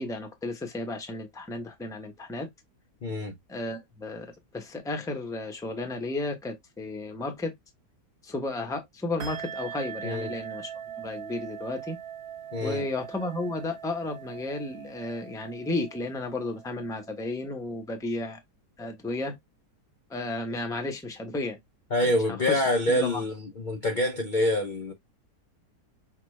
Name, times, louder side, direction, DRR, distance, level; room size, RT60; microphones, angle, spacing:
voice 1, 0.0-2.5 3.5-7.5 8.2-10.7 11.0-12.0 12.6-18.4 18.8-19.4 20.1-21.6 22.1-22.2 22.5-22.6 22.9-23.2, left 2 dB, 5° left, 0.5 m, -33 dB
voice 2, 3.0-3.3 10.0-10.3 12.5-12.8 21.9-24.9, left 1 dB, 50° left, 0.5 m, -26 dB
sound 1, 9.2-17.3, right 9 dB, 55° right, 0.7 m, -41 dB
5.8 x 2.3 x 3.2 m
omnidirectional pair, 1.8 m